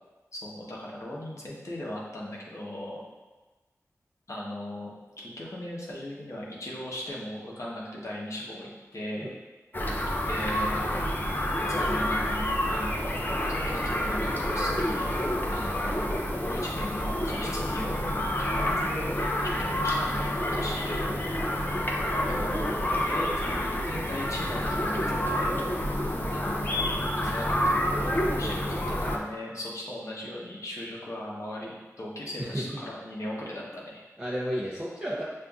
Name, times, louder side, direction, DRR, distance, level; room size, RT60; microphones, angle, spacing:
voice 1, 0.3-3.0 4.3-9.3 10.2-10.9 11.6-15.2 15.5-16.1 16.4-19.1 19.4-20.9 22.1-25.6 26.3-28.1 28.4-34.0, left 1 dB, 60° left, -4 dB, 0.9 m, -38 dB
sound 1, 9.7-29.2, left 1 dB, 35° left, 0.5 m, -28 dB
voice 2, 32.4-32.8 34.2-35.2, equal, 15° right, -7 dB, 0.6 m, -32 dB
5.4 x 2.5 x 2.3 m, 1.2 s
cardioid pair, 45°, 6 cm